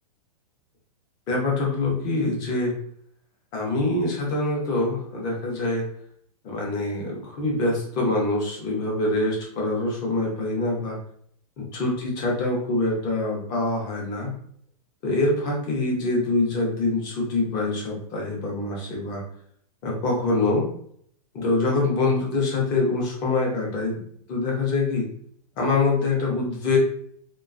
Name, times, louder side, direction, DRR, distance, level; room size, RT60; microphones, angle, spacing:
voice 1, 1.3-2.7 3.5-5.9 6.4-11.0 11.6-14.3 15.0-19.2 19.8-20.7 21.3-24.0 24.3-25.1 25.6-26.8, left 2 dB, 20° left, -2 dB, 0.5 m, -25 dB
2.3 x 2.2 x 2.4 m, 0.64 s
hypercardioid pair, 165°, 20 cm